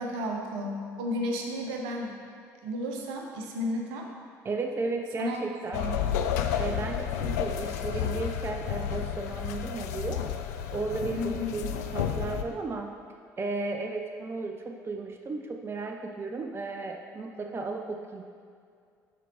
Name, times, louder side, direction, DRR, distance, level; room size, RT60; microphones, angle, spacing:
voice 1, 0.0-2.1 2.6-4.1 5.2-6.0 11.1-11.6, left 1 dB, 65° right, 2 dB, 0.8 m, -33 dB
voice 2, 4.4-5.9 6.6-10.3 10.7-12.9 13.4-18.3, right 3 dB, 25° right, 4 dB, 0.5 m, -34 dB
sound 1, 5.7-12.4, left 9 dB, 75° left, 0.4 m, -31 dB
11.0 x 4.5 x 2.9 m, 2.3 s
figure-of-eight pair, 55°, 9 cm